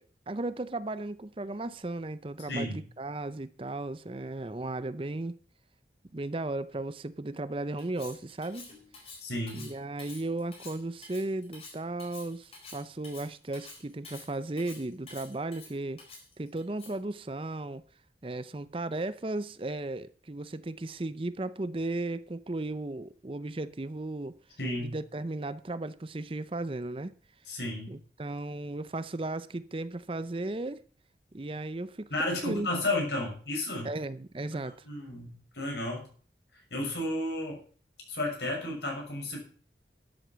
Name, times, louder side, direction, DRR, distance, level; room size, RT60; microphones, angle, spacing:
voice 1, 0.0-5.3 6.1-8.7 9.5-16.0 16.4-17.8 18.2-24.4 24.8-27.1 27.9-30.8 31.3-32.7 33.8-34.8, right 2 dB, 30° right, 0.6 m, -35 dB
voice 2, 2.5-2.8 9.2-9.7 24.6-25.0 27.5-28.0 32.1-33.9 34.5-36.1 36.7-37.6 38.1-39.4, left 1 dB, 75° left, 6.5 m, -33 dB
Cutlery silverware, 7.8-17.1, left 4 dB, 35° left, 4.0 m, -49 dB
12.0 x 8.3 x 7.5 m
head